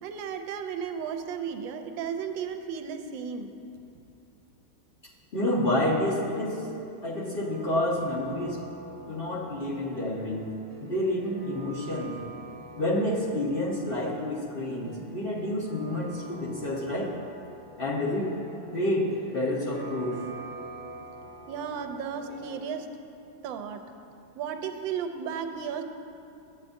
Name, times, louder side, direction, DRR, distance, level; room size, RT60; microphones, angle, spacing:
voice 1, 0.0-3.5 21.5-22.9 23.4-23.8 24.4-25.8, right 7 dB, 85° right, 6 dB, 1.3 m, -34 dB
voice 2, 5.3-6.7 7.0-8.6 9.1-10.5 10.8-12.2 12.8-17.1 17.8-18.3 18.7-20.2, left 1 dB, 35° left, -7 dB, 1.0 m, -29 dB
sound 1, 6.4-22.6, right 2 dB, 35° right, 2.2 m, -47 dB
12.0 x 8.4 x 2.6 m, 2.8 s
omnidirectional pair, 2.0 m